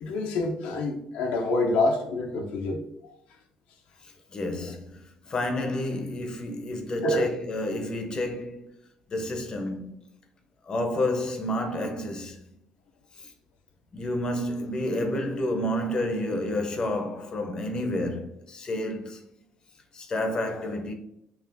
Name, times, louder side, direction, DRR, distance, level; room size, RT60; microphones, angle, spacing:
voice 1, 0.0-2.8 3.1-3.2 7.0-7.3, left 2 dB, 85° left, 0.6 m, -26 dB
voice 2, 4.0-8.7 9.1-10.0 10.6-12.5 13.2-13.3 13.9-19.2 19.9-20.9, left 1 dB, 40° left, 0.7 m, -30 dB
5.5 x 2.4 x 2.5 m
cardioid pair, 90°, 2 cm